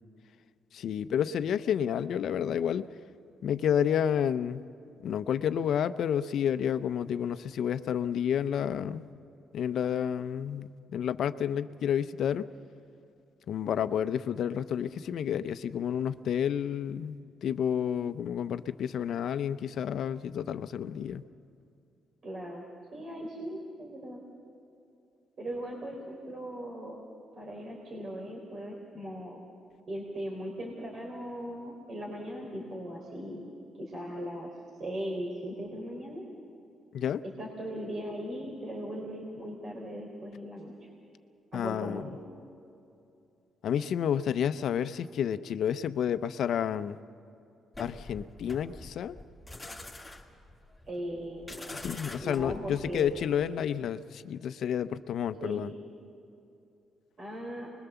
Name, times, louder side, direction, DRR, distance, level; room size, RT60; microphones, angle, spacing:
voice 1, 0.7-2.9 3.4-4.6 5.0-9.1 9.5-12.4 13.5-21.2 36.9-37.2 41.5-42.0 43.6-47.0 47.8-49.2 51.7-55.7, left 9 dB, 70° left, 12 dB, 0.6 m, -30 dB
voice 2, 22.2-22.6 22.9-24.2 25.4-27.0 27.3-29.4 29.9-33.4 33.8-34.5 34.8-36.2 37.4-40.9 41.5-42.1 50.9-51.6 52.2-53.2 55.4-55.6 57.2-57.7, equal, 50° right, -2 dB, 3.8 m, -38 dB
sound 1, 47.7-53.4, left 2 dB, 5° left, 2.3 m, -45 dB
25.0 x 21.5 x 7.0 m, 2.7 s
cardioid pair, 90°, 0 cm